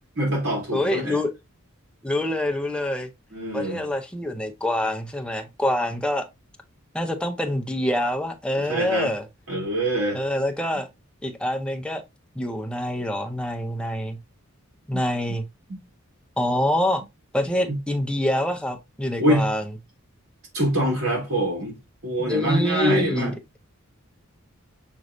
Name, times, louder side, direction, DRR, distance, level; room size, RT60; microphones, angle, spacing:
voice 1, 0.2-1.2 3.3-3.8 8.6-9.1 9.5-10.2 14.9-15.0 15.7-15.8 17.7-17.8 19.2-19.5 20.5-21.8 22.0-23.3, right 1 dB, 80° right, 3.0 m, -24 dB
voice 2, 0.7-1.3 2.0-3.1 3.5-6.3 6.9-9.3 10.1-10.9 11.2-12.0 12.4-14.2 14.9-15.4 16.4-17.0 17.3-19.6 22.2-23.3, left 1 dB, 5° left, 0.5 m, -26 dB
6.0 x 3.1 x 2.5 m
head